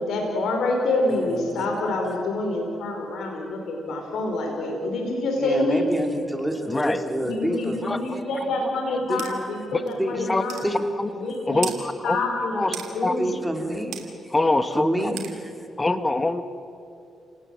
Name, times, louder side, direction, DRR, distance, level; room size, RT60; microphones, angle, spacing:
voice 1, 0.0-5.9 7.2-10.6 11.1-11.7 12.0-13.4, left 2 dB, 80° left, 1 dB, 4.4 m, -27 dB
voice 2, 1.1-2.0 5.4-7.8 9.1-9.2 10.0-10.2 10.6-10.8 13.2-14.3 14.8-15.5, right 1 dB, 5° right, 3 dB, 3.7 m, -28 dB
voice 3, 6.7-7.0 7.8-8.2 9.7-9.9 10.3-10.4 11.0-11.1 11.5-12.2 12.5-13.2 14.3-15.1 15.8-16.4, left 2 dB, 25° left, 10 dB, 1.4 m, -24 dB
sound 1, 9.2-9.3 9.9-10.0 10.5-10.7 11.6-11.8 12.7-12.9 13.9-14.1 15.2-15.3, right 11 dB, 85° right, 2.8 m, -33 dB
30.0 x 19.0 x 7.7 m, 2.6 s
cardioid pair, 75°, 0 cm